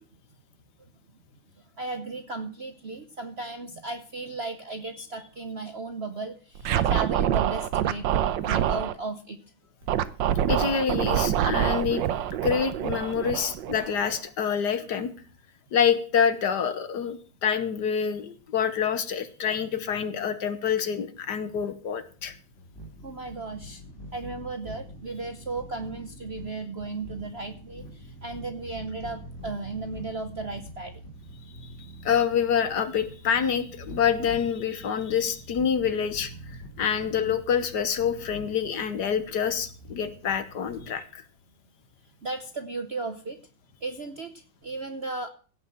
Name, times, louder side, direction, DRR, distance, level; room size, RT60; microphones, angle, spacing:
voice 1, 1.8-9.4 23.0-23.8 24.1-31.0 42.2-43.4 43.8-45.3, right 3 dB, 45° right, 8 dB, 0.8 m, -35 dB
Scratching (performance technique), 6.6-8.9 9.9-14.2, right 11 dB, 70° right, 1.4 m, -26 dB
voice 2, 10.5-12.0 12.4-15.1 15.7-22.3 32.0-36.3 36.8-41.2, left 7 dB, 60° left, 12 dB, 1.5 m, -26 dB
sound 1, 21.5-41.0, equal, 35° left, 3.8 m, -45 dB
16.5 x 5.7 x 7.8 m, 0.41 s
omnidirectional pair, 2.2 m